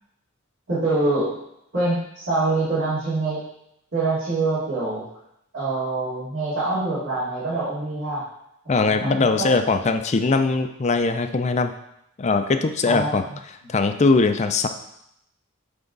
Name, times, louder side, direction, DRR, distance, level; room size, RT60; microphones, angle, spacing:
voice 1, 0.7-1.4 1.7-3.4 3.9-5.0 5.5-8.2 8.7-9.5 12.8-13.1, right 2 dB, 60° right, -14 dB, 2.7 m, -25 dB
voice 2, 8.7-11.7 12.2-13.2 13.7-14.7, left 3 dB, 30° left, 8 dB, 0.4 m, -21 dB
9.2 x 3.5 x 3.9 m, 0.79 s
head